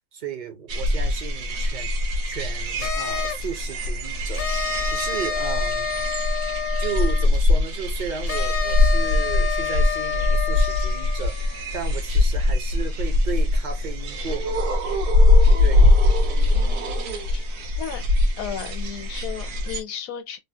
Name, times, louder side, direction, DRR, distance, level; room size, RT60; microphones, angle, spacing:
voice 1, 0.1-1.9 2.3-4.5 4.9-5.9 6.8-14.6 15.6-16.0, right 6 dB, 50° right, 0.5 m, -34 dB
sound 1, 0.7-19.8, left 2 dB, 90° right, 1.3 m, -22 dB
sound 2, 2.8-3.5 4.3-7.4 8.3-12.2, left 7 dB, 50° left, 0.6 m, -29 dB
voice 2, 16.5-17.4 17.8-18.0 18.4-20.4, left 9 dB, 70° left, 1.0 m, -35 dB
3.3 x 2.3 x 2.7 m
omnidirectional pair, 1.6 m